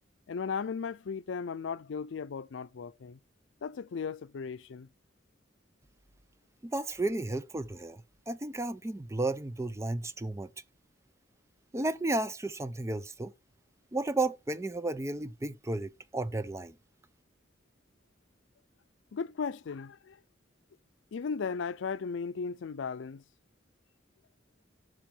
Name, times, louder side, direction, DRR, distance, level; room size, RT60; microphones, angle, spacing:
voice 1, 0.3-3.2 3.6-4.9 19.1-20.2 21.1-23.2, left 5 dB, 90° left, 0.4 m, -36 dB
voice 2, 6.6-10.5 11.7-13.3 13.9-16.8, right 2 dB, 15° right, 0.5 m, -33 dB
6.2 x 4.4 x 6.5 m
head